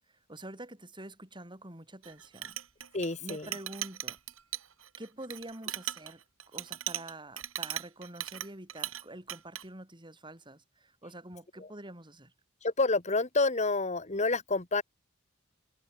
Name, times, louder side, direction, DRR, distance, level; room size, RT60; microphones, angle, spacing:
voice 1, 0.1-2.6 3.2-4.2 5.0-6.2 6.5-12.3, right 1 dB, 25° right, 6.2 m, -46 dB
Chink clink, 2.0-9.0 9.3-9.6, right 12 dB, 85° right, 4.0 m, -38 dB
voice 2, 2.9-3.5 11.6-11.7 12.6-14.8, left 3 dB, 35° left, 1.9 m, -29 dB
head